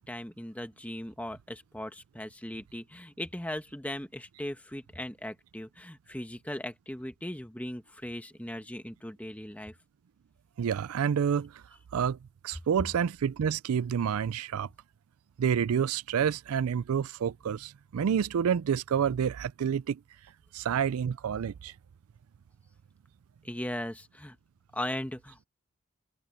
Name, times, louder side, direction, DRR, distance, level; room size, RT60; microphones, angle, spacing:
voice 1, 0.0-9.7 23.4-24.3 24.7-25.5, left 1 dB, 5° left, 1.2 m, -38 dB
voice 2, 10.6-11.6 11.9-12.2 12.4-14.7 15.4-20.0 20.5-21.7, right 7 dB, 85° right, 0.4 m, -28 dB
head